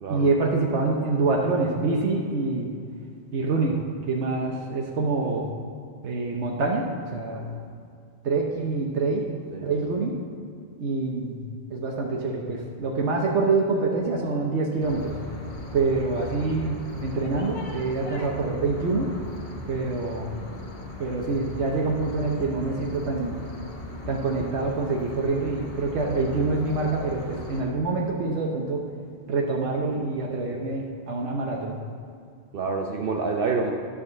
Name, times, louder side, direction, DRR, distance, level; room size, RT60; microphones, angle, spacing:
voice 1, 0.1-2.7 3.3-3.8 4.1-5.5 6.0-7.6 8.2-10.1 10.8-11.4 11.7-15.2 15.7-19.1 19.7-20.3 21.0-23.4 24.1-28.8 29.3-31.8, right 3 dB, 85° right, -1 dB, 1.2 m, -26 dB
sound 1, 14.8-27.6, left 1 dB, 45° left, 1.3 m, -38 dB
voice 2, 32.5-33.7, right 4 dB, 60° right, 2 dB, 0.8 m, -27 dB
11.0 x 4.2 x 6.5 m, 2.3 s
omnidirectional pair, 1.1 m